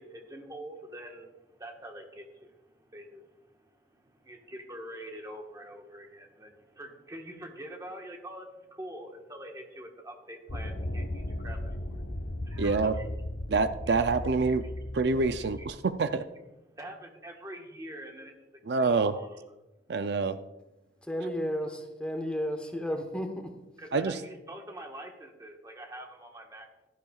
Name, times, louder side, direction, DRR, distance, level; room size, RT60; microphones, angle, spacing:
voice 1, 0.0-13.0 13.9-14.0 14.6-14.7 15.4-15.7 16.7-19.3 23.8-26.9, right 1 dB, 20° right, 2 dB, 1.3 m, -45 dB
sound 1, 10.5-15.7, left 1 dB, 85° left, 1.0 m, -36 dB
voice 2, 12.6-12.9 13.5-14.6 14.9-16.2 18.7-19.1 19.9-20.4 23.9-24.2, right 4 dB, 70° right, 11 dB, 0.4 m, -26 dB
voice 3, 21.0-23.5, equal, 5° left, 4 dB, 1.0 m, -33 dB
15.0 x 12.0 x 2.4 m, 1.0 s
head